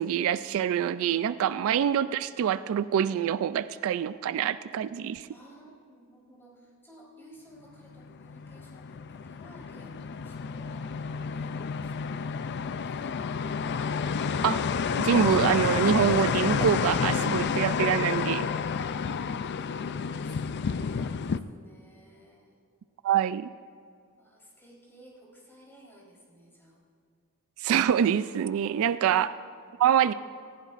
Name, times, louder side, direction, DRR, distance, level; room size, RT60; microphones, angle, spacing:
voice 1, 0.0-5.3 14.4-14.6 15.0-18.5 23.0-23.5 27.6-29.3 29.8-30.1, right 9 dB, 65° right, 15 dB, 0.3 m, -25 dB
voice 2, 5.3-11.1 11.3-13.6 18.9-19.1 19.8-22.7 24.2-26.8 29.0-29.2 29.8-30.2, right 1 dB, 10° left, -5 dB, 3.9 m, -55 dB
sound 1, 7.9-21.4, left 6 dB, 50° left, 0.4 m, -30 dB
19.0 x 15.5 x 2.5 m, 2.4 s
head